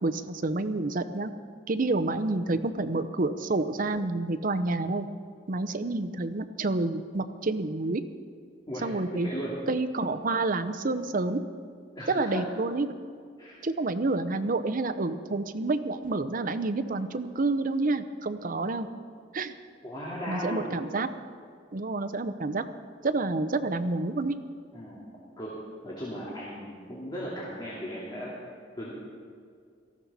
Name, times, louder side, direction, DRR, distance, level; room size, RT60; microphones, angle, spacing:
voice 1, 0.0-1.3 1.7-5.1 5.5-8.0 8.8-9.3 9.7-11.4 12.1-12.9 13.6-18.9 19.3-19.5 20.3-21.1 21.7-22.6 23.0-24.4, right 2 dB, 50° right, 10 dB, 0.7 m, -28 dB
voice 2, 9.1-9.5 11.9-12.5 13.4-13.6 19.8-20.7 24.7-25.1 25.4-25.6 25.8-28.3 28.8-28.9, equal, 25° left, -6 dB, 2.6 m, -36 dB
18.5 x 14.5 x 4.2 m, 2.2 s
head